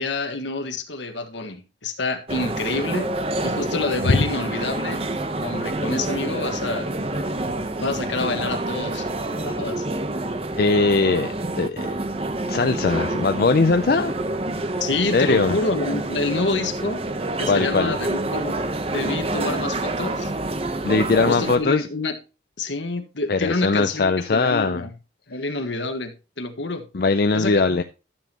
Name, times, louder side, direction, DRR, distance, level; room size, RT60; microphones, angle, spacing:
voice 1, 0.0-3.1 3.4-5.0 5.4-6.9 7.8-9.1 9.4-9.8 14.8-17.1 17.4-18.5 18.9-20.3 21.3-22.1 22.6-24.9 25.3-26.8 27.3-27.8, left 3 dB, 75° left, 1.6 m, -27 dB
sound 1, 2.3-21.6, right 2 dB, 30° right, 0.8 m, -27 dB
voice 2, 10.6-11.9 12.5-14.1 15.1-15.5 17.4-17.9 20.8-21.9 23.3-24.8 26.9-27.8, left 3 dB, 55° left, 0.5 m, -20 dB
12.5 x 7.3 x 2.9 m
head